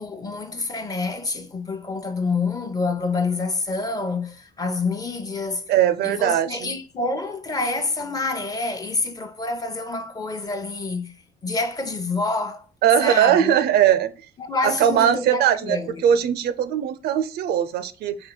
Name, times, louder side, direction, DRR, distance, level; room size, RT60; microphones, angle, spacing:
voice 1, 0.0-5.6 6.0-11.1 11.4-12.6 13.0-13.5 14.4-16.0, left 3 dB, 20° left, 0.7 m, -27 dB
voice 2, 5.7-6.7 12.8-14.1 14.6-18.2, right 10 dB, 70° right, 0.5 m, -20 dB
4.4 x 2.9 x 3.9 m
cardioid pair, 110°, 17 cm